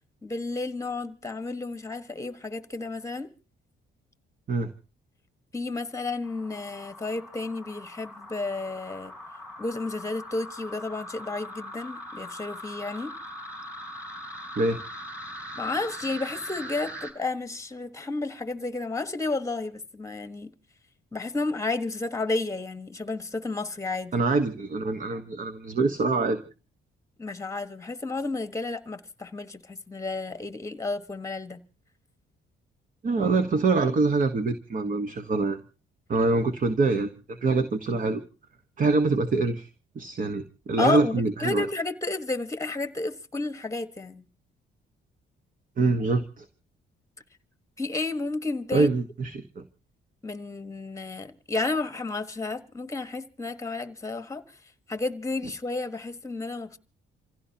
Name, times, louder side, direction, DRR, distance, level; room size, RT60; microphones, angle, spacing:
voice 1, 0.2-3.3 5.5-9.1 9.6-13.1 15.5-20.5 21.1-24.2 27.2-31.6 40.8-44.2 47.8-48.9 50.2-54.4 54.9-56.8, left 3 dB, 15° left, 1.3 m, -32 dB
sound 1, 6.2-17.1, equal, 5° right, 4.5 m, -41 dB
voice 2, 24.1-26.4 33.0-35.6 36.1-38.2 38.8-39.7 39.9-41.7 45.8-46.4 48.7-49.6, right 3 dB, 45° right, 1.2 m, -25 dB
27.5 x 16.0 x 2.8 m
cardioid pair, 90°, 20 cm